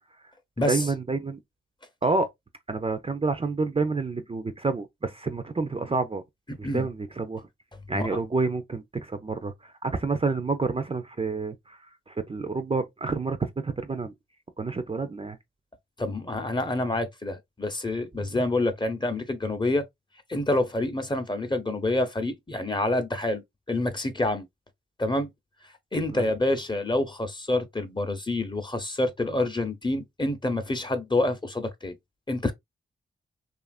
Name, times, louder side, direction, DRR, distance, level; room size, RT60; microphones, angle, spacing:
voice 1, 0.7-1.4 2.0-2.3 2.7-6.2 6.6-7.5 7.9-14.1 14.6-15.4 26.1-26.3, right 3 dB, 30° right, 0.5 m, -29 dB
voice 2, 16.0-19.8 20.3-24.5 25.0-25.3 25.9-31.9 32.3-32.5, left 2 dB, 20° left, 0.7 m, -27 dB
2.8 x 2.5 x 2.4 m
cardioid pair, 50°, 21 cm